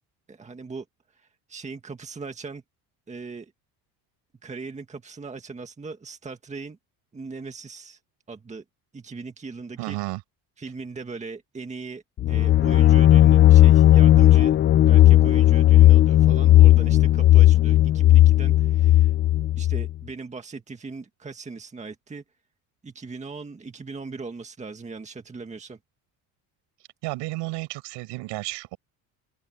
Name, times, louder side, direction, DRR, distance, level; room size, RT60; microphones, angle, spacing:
voice 1, 0.3-0.9 1.1-2.6 3.1-3.5 4.4-6.8 7.1-8.0 8.3-8.6 8.9-10.0 10.6-14.6 14.9-19.1 19.6-22.2 22.8-25.8, right 4 dB, 15° right, 1.8 m, -39 dB
voice 2, 9.8-10.2 27.0-28.8, right 21 dB, 80° right, 6.1 m, -32 dB
sound 1, 12.2-19.9, left 13 dB, 30° left, 0.4 m, -15 dB
open air
cardioid pair, 125°, 41 cm